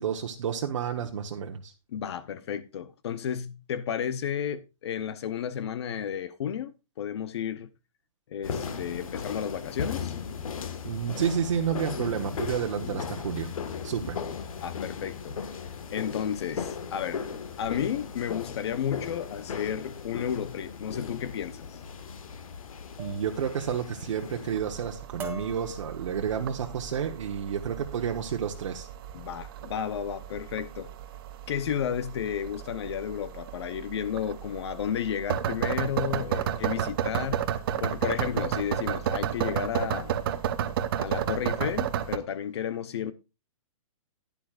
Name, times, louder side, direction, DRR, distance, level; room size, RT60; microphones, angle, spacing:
voice 1, 0.0-1.7 10.8-13.5 13.8-14.2 23.0-28.9, right 8 dB, 65° right, 1.2 m, -30 dB
voice 2, 1.9-6.7 7.0-7.7 8.3-10.1 14.6-15.4 15.9-17.2 17.6-21.8 29.1-30.9 31.5-37.4 37.8-40.2 41.0-43.1, left 9 dB, 50° left, 0.8 m, -32 dB
sound 1, 8.4-24.6, left 6 dB, 80° left, 1.6 m, -37 dB
sound 2, 22.0-22.3 23.0-23.3 23.7-24.2 24.6-24.8 25.2-26.5 27.1-27.4 27.7-28.1, right 1 dB, 10° right, 1.3 m, -44 dB
sound 3, 24.5-42.2, right 9 dB, 45° right, 1.0 m, -32 dB
12.0 x 10.5 x 2.5 m
hypercardioid pair, 160°, 17 cm